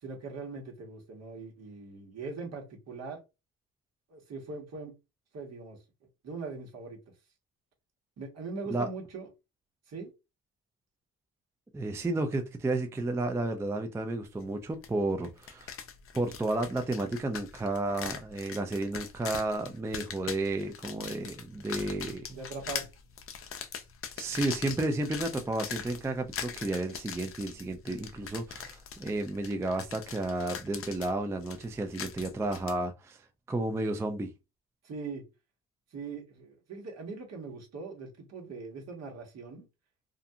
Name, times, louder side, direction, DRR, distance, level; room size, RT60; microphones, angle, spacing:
voice 1, 0.0-3.2 4.1-4.9 5.3-5.8 6.2-7.0 8.2-9.3 9.9-10.1 22.3-22.9 34.8-35.2 35.9-39.7, right 4 dB, 60° right, 1.2 m, -41 dB
voice 2, 11.7-15.8 16.1-22.4 24.2-33.2 33.5-34.3, right 2 dB, 10° right, 0.3 m, -32 dB
branches creaking, 14.8-14.9 15.2-32.8, left 7 dB, 45° left, 0.5 m, -41 dB
2.5 x 2.3 x 2.6 m
cardioid pair, 90°, 30 cm